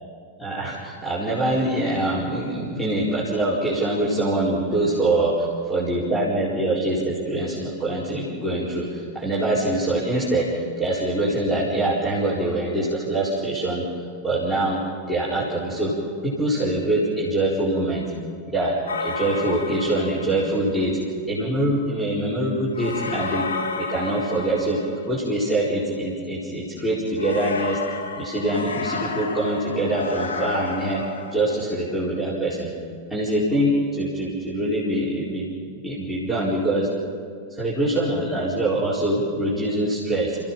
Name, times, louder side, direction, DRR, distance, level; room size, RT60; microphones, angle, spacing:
voice 1, 0.4-13.9 14.2-14.8 15.1-16.0 16.2-18.1 18.5-21.0 21.3-23.5 23.8-27.8 28.2-32.7 33.1-35.5 35.8-36.9 37.5-40.4, right 1 dB, 5° left, -8 dB, 4.7 m, -24 dB
sound 1, 18.9-20.6 22.7-25.3 27.2-31.6, left 4 dB, 70° left, 2.3 m, -31 dB
29.5 x 16.5 x 5.7 m, 2.1 s
figure-of-eight pair, 90°, 0 cm